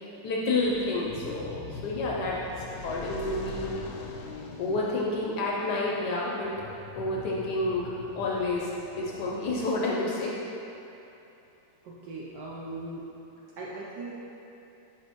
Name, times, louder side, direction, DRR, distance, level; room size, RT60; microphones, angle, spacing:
voice 1, 0.2-3.8 4.6-6.5 6.9-7.8 8.1-10.3, left 2 dB, 70° left, -4 dB, 1.0 m, -29 dB
sound 1, 0.6-10.1, left 4 dB, 85° left, 1.4 m, -43 dB
sound 2, 3.2-4.8, right 1 dB, 85° right, 1.9 m, -48 dB
voice 2, 11.8-13.1 13.4-14.2, right 2 dB, 70° right, -5 dB, 1.1 m, -39 dB
6.2 x 5.4 x 3.0 m, 2.9 s
omnidirectional pair, 2.2 m